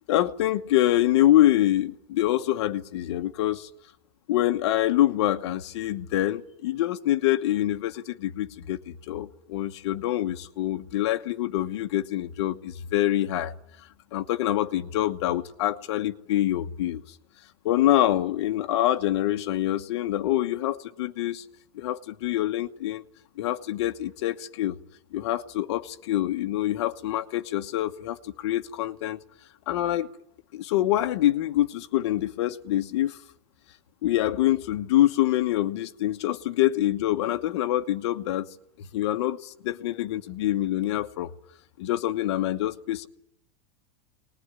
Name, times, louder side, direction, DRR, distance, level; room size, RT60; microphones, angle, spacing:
voice 1, 0.1-3.7 4.3-13.5 14.1-17.0 17.6-21.4 21.7-23.0 23.4-24.8 25.1-29.2 29.7-30.1 30.5-33.2 34.0-38.5 38.9-41.3 41.8-43.1, left 13 dB, 60° left, 1.2 m, -25 dB
23.5 x 20.0 x 9.8 m
supercardioid pair, 165°, 16 cm